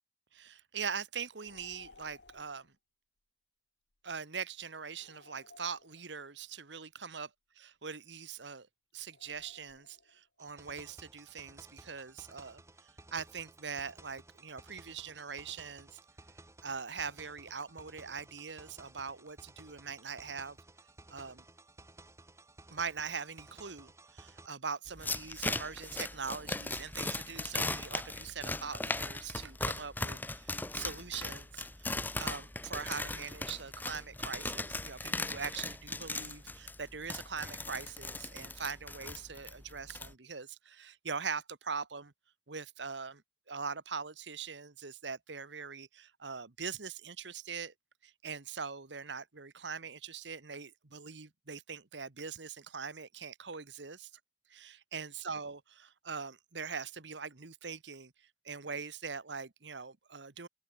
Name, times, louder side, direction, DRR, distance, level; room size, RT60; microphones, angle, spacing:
voice 1, 0.3-2.7 4.0-7.3 7.6-8.7 8.9-12.6 13.1-16.0 16.6-20.6 21.1-21.4 22.7-42.1 42.5-43.2 43.5-47.7 48.0-54.1 54.5-58.1 58.4-60.5, right 5 dB, 85° right, 1.5 m, -42 dB
sound 1, 1.4-2.7 5.0-6.4 9.1-10.2, left 3 dB, 85° left, 2.3 m, -58 dB
sound 2, 10.4-24.5, right 2 dB, 15° right, 1.6 m, -56 dB
sound 3, 24.9-40.1, left 2 dB, 10° left, 1.7 m, -38 dB
head